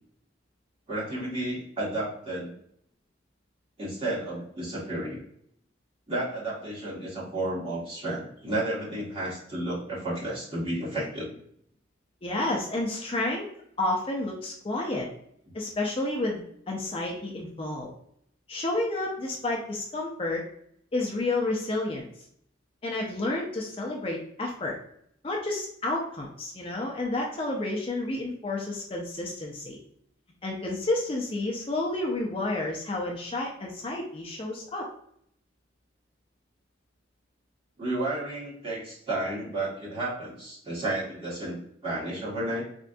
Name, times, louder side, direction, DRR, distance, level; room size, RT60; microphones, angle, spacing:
voice 1, 0.9-2.5 3.8-5.2 6.1-11.3 37.8-42.6, right 1 dB, 30° right, -7 dB, 1.5 m, -32 dB
voice 2, 12.2-13.5 13.8-15.1 15.5-17.9 18.5-20.4 20.9-22.1 22.8-24.8 25.2-29.8 30.4-34.8, left 2 dB, 30° left, -1 dB, 0.5 m, -30 dB
4.4 x 2.5 x 2.5 m, 0.68 s
head